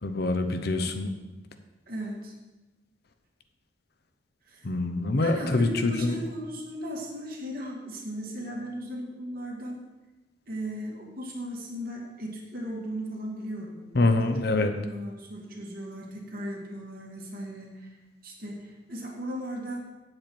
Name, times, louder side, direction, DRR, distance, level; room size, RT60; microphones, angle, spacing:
voice 1, 0.0-1.1 4.6-6.1 13.9-14.7, left 2 dB, 55° left, 8 dB, 0.8 m, -25 dB
voice 2, 1.9-2.3 4.5-4.7 5.2-9.8 10.5-13.8 14.2-17.9 18.2-19.8, equal, 50° right, -1 dB, 1.8 m, -37 dB
8.8 x 7.8 x 4.5 m, 1.1 s
head